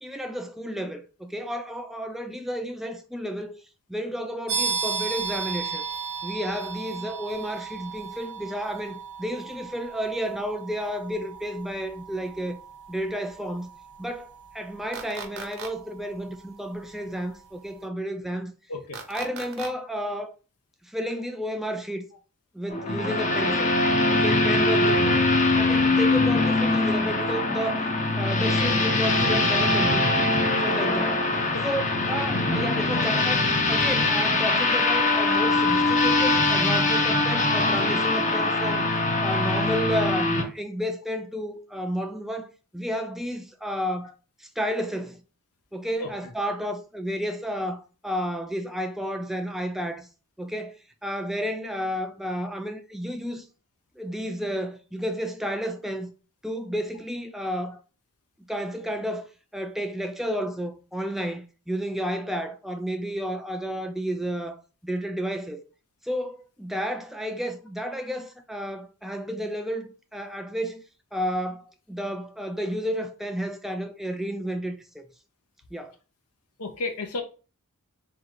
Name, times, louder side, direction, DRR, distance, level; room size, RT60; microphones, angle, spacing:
voice 1, 0.0-3.5 3.9-5.9 6.2-12.6 12.9-13.7 14.0-18.5 19.1-20.3 20.8-22.1 22.5-23.7 24.1-25.2 25.5-27.8 28.2-30.1 30.5-31.2 31.6-38.9 39.2-42.5 42.7-44.1 44.4-45.2 45.7-50.1 50.4-50.7 51.0-53.4 54.0-56.1 56.4-57.8 58.5-59.3 59.5-65.6 66.0-70.8 71.1-75.1 75.7-75.9, equal, ahead, 0.4 m, -31 dB
sound 1, 4.5-17.0, right 5 dB, 85° right, 1.1 m, -35 dB
sound 2, 14.9-15.7 18.9-19.7, right 5 dB, 65° right, 0.7 m, -37 dB
sound 3, 22.7-40.4, left 2 dB, 35° left, 0.7 m, -22 dB
voice 2, 76.6-77.2, left 2 dB, 85° left, 0.7 m, -32 dB
3.8 x 2.4 x 4.5 m
head